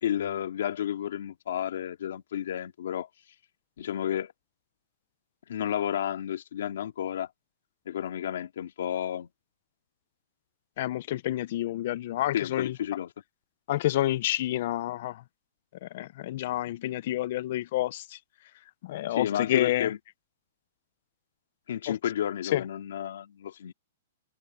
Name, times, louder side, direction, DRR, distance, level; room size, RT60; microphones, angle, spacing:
voice 1, 0.0-3.1 3.8-4.3 5.5-7.3 7.9-9.3 12.3-13.1 19.1-20.0 21.7-23.7, left 10 dB, 65° left, 2.8 m, -31 dB
voice 2, 10.8-12.8 13.7-15.2 15.8-18.2 18.8-19.9 21.9-22.0 22.5-22.6, left 14 dB, 45° left, 0.5 m, -29 dB
hypercardioid pair, 170°, 0 cm